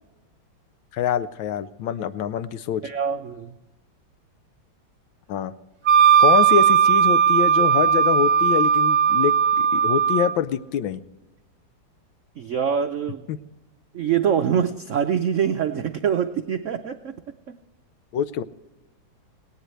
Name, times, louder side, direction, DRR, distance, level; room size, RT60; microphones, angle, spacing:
voice 1, 0.9-2.8 5.3-5.5 6.2-11.0 13.3-13.4 18.1-18.4, left 9 dB, 90° left, 14 dB, 1.5 m, -25 dB
voice 2, 2.8-3.6 12.4-13.3 13.9-17.6, right 8 dB, 80° right, 8 dB, 0.6 m, -25 dB
Wind instrument woodwind instrument, 5.9-10.3, right 7 dB, 60° right, 1.0 m, -17 dB
18.5 x 18.0 x 3.2 m, 1.0 s
omnidirectional pair, 2.1 m